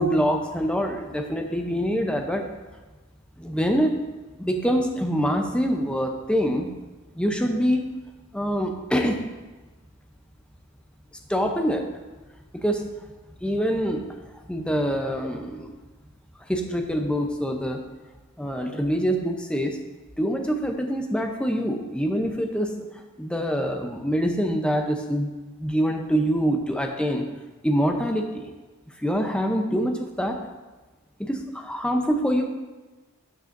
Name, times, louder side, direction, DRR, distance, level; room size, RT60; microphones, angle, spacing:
voice 1, 0.0-2.4 3.4-4.0 4.4-6.7 7.2-7.9 8.3-9.2 11.3-11.8 12.5-12.8 13.4-14.1 14.5-15.7 16.5-17.8 18.4-19.8 20.2-22.8 23.2-25.3 25.6-27.3 27.6-28.4 29.0-30.4 31.2-32.4, equal, 5° left, 3 dB, 0.7 m, -25 dB
12.5 x 7.7 x 2.6 m, 1.2 s
head